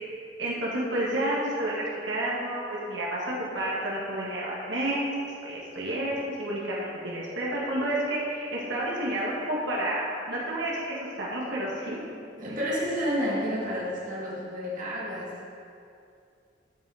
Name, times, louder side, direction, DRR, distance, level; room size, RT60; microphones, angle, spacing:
voice 1, 0.4-5.0 5.4-12.0, right 1 dB, 75° right, -6 dB, 2.0 m, -30 dB
voice 2, 12.4-15.3, equal, 45° right, -6 dB, 1.8 m, -30 dB
12.0 x 5.5 x 4.9 m, 2.5 s
head